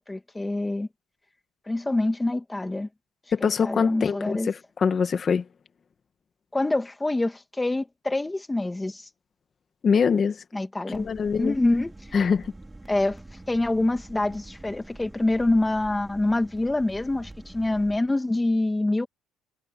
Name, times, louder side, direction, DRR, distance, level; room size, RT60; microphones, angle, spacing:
voice 1, 0.1-0.9 1.7-2.9 3.4-4.5 6.5-9.1 10.5-11.1 11.4-11.9 12.9-13.2 13.5-19.1, left 2 dB, 10° left, 2.0 m, -26 dB
voice 2, 3.3-5.4 9.8-10.4 10.9-11.6 12.1-12.5, left 6 dB, 30° left, 1.9 m, -24 dB
sound 1, 10.9-18.0, right 2 dB, 10° right, 5.3 m, -46 dB
cardioid pair, 125°, 0 cm